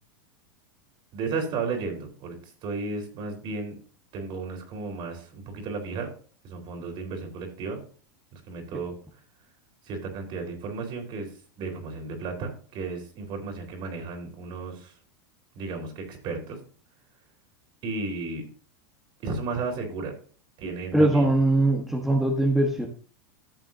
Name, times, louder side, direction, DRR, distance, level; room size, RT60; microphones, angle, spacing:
voice 1, 1.1-3.7 4.1-6.1 6.4-7.8 8.3-8.9 9.8-11.3 11.6-14.9 15.6-16.6 17.8-18.5 19.2-20.1 20.6-21.3, right 4 dB, 45° right, 3 dB, 3.9 m, -33 dB
voice 2, 20.9-22.9, right 1 dB, ahead, 0 dB, 1.5 m, -21 dB
14.5 x 7.3 x 2.7 m, 0.41 s
hypercardioid pair, 125°, 12 cm